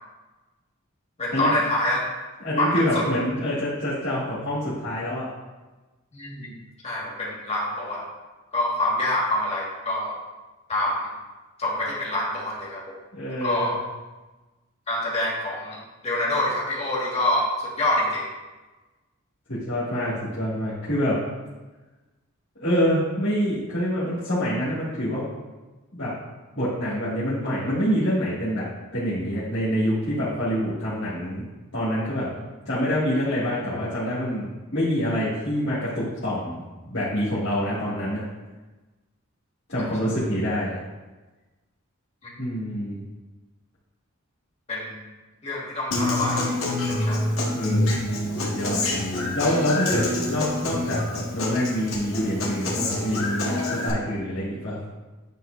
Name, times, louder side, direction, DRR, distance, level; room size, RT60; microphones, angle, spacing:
voice 1, 1.2-2.0 2.6-3.0 6.1-6.5 6.8-8.0 8.5-10.2 10.7-11.1 11.6-13.0 13.3-13.7 14.9-15.8 16.0-18.3 42.2-42.4 44.7-45.0 45.4-46.6 46.9-47.2, left 1 dB, 30° left, -4 dB, 1.6 m, -26 dB
voice 2, 2.4-5.3 13.1-13.7 19.5-21.2 22.6-25.2 25.9-26.1 26.6-31.4 31.7-32.3 32.7-38.2 39.7-40.7 42.4-43.0 47.5-48.1 48.3-48.8 49.3-54.8, equal, 55° left, -13 dB, 2.0 m, -26 dB
Human voice / Acoustic guitar, 45.9-53.9, left 2 dB, 80° left, 1.5 m, -27 dB
9.1 x 5.6 x 2.5 m, 1.2 s
head